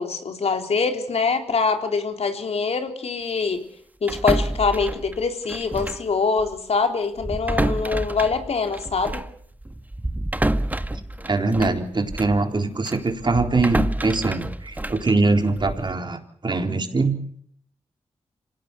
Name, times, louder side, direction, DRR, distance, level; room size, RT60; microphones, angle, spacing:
voice 1, 0.0-3.7 4.0-9.2, left 4 dB, 65° left, 5 dB, 3.7 m, -24 dB
sound 1, 4.1-6.1 6.4-6.6 7.2-12.4 12.8-15.9, right 1 dB, 15° right, 1.7 m, -28 dB
voice 2, 11.3-17.2, right 3 dB, 40° right, 5 dB, 4.0 m, -22 dB
26.0 x 17.5 x 8.3 m, 0.62 s
cardioid pair, 65°, 12 cm